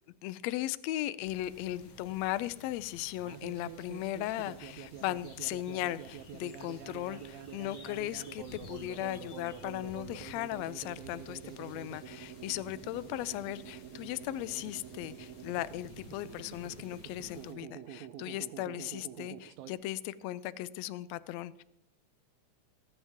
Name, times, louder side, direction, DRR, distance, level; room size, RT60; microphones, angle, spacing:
voice 1, 0.2-21.6, left 15 dB, 85° left, 15 dB, 1.5 m, -37 dB
sound 1, 1.2-17.5, left 4 dB, 50° left, 1.1 m, -54 dB
sound 2, 3.2-19.7, right 11 dB, 75° right, 1.8 m, -47 dB
19.0 x 9.3 x 3.6 m, 0.81 s
omnidirectional pair, 3.6 m